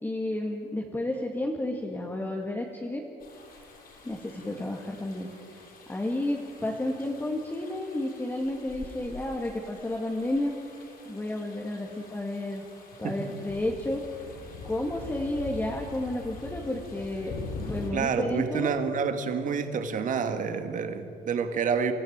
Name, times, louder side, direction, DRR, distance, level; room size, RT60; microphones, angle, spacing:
voice 1, 0.0-3.1 4.0-5.3 5.9-10.5 11.1-12.7 13.0-14.1 14.6-17.4 17.6-19.0, left 1 dB, 15° left, 0 dB, 2.0 m, -31 dB
sound 1, 3.2-17.9, left 3 dB, 60° left, 6.6 m, -44 dB
voice 2, 17.9-21.9, right 6 dB, 50° right, 7 dB, 1.9 m, -28 dB
25.5 x 14.0 x 9.4 m, 2.5 s
cardioid pair, 110°, 17 cm